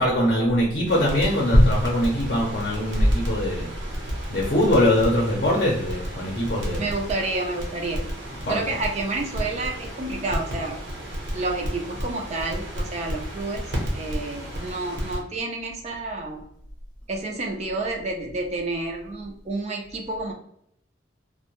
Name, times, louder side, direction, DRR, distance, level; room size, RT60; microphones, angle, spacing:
voice 1, 0.0-3.7 4.3-6.9 8.5-8.6, left 1 dB, 50° left, -2 dB, 0.6 m, -21 dB
Crackle, 0.9-15.2, equal, 75° right, 0.9 m, -33 dB
voice 2, 6.8-8.1 8.5-10.8 11.3-13.7 13.9-16.4 17.1-20.3, right 2 dB, 35° right, 1 dB, 0.4 m, -29 dB
2.6 x 2.1 x 2.9 m, 0.72 s
head